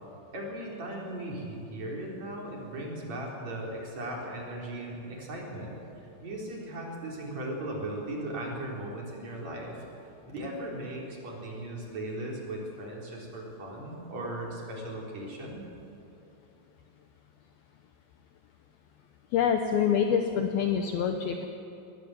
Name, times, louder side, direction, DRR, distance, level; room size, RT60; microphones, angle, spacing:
voice 1, 0.3-5.8 6.2-9.8 10.3-15.7, right 1 dB, 40° right, -2 dB, 4.8 m, -37 dB
voice 2, 19.3-21.5, left 7 dB, 70° left, 5 dB, 2.5 m, -26 dB
22.0 x 18.5 x 8.0 m, 2.9 s
omnidirectional pair, 5.2 m